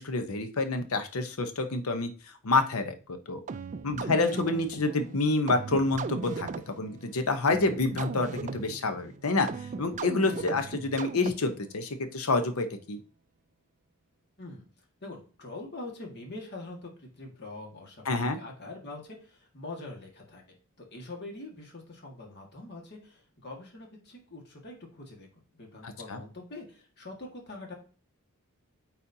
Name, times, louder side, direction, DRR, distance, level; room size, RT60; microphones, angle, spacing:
voice 1, 0.0-2.1 2.4-3.4 3.8-9.5 9.8-13.0 18.1-18.4 25.8-26.2, left 3 dB, 75° left, 8 dB, 0.8 m, -28 dB
sound 1, 3.5-11.7, right 4 dB, 35° right, 0.3 m, -38 dB
voice 2, 15.0-20.4 20.8-25.3 25.6-27.7, left 2 dB, 50° left, 1 dB, 1.7 m, -44 dB
8.5 x 4.1 x 2.7 m, 0.38 s
head